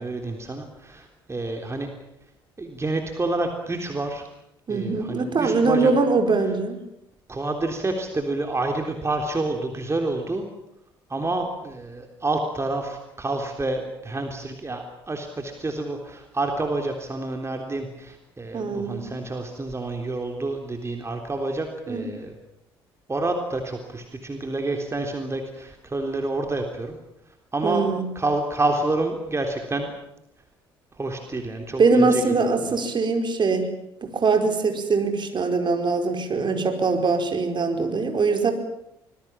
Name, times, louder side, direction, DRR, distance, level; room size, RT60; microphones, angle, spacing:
voice 1, 0.0-1.9 2.6-4.3 4.7-5.9 7.3-10.4 11.1-22.3 23.1-27.0 27.5-29.9 31.0-32.7, right 2 dB, 20° right, 3 dB, 3.6 m, -28 dB
voice 2, 4.7-6.8 18.5-19.1 21.9-22.1 27.6-28.1 31.8-33.7 34.0-38.5, right 4 dB, 40° right, 5 dB, 4.9 m, -22 dB
26.0 x 20.5 x 7.5 m, 0.83 s
hypercardioid pair, 50°, 12 cm